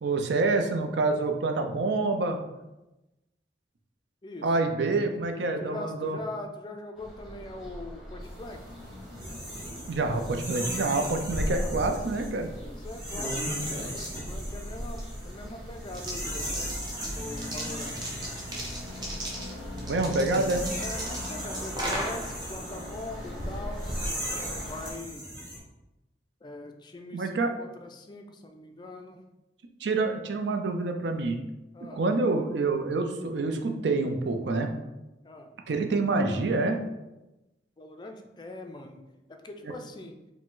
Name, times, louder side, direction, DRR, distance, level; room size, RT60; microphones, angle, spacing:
voice 1, 0.0-2.4 4.4-6.2 9.9-12.5 19.8-20.6 27.1-27.5 29.8-31.4 31.9-34.7 35.7-36.8 39.6-39.7, right 3 dB, 80° right, 5 dB, 0.5 m, -27 dB
voice 2, 4.2-4.7 5.3-8.6 11.5-11.9 12.5-15.0 15.2-16.6 17.1-18.1 19.9-20.4 20.8-24.1 24.4-25.2 26.4-29.2 31.7-32.0 35.2-35.6 37.8-39.0 39.3-40.2, left 2 dB, 25° left, 5 dB, 0.3 m, -42 dB
sound 1, 7.0-24.9, left 1 dB, ahead, 0.9 m, -41 dB
sound 2, 8.3-25.6, equal, 50° right, 1.4 m, -39 dB
sound 3, 10.9-24.9, equal, 25° right, 0.7 m, -37 dB
4.9 x 2.1 x 3.7 m, 0.99 s
head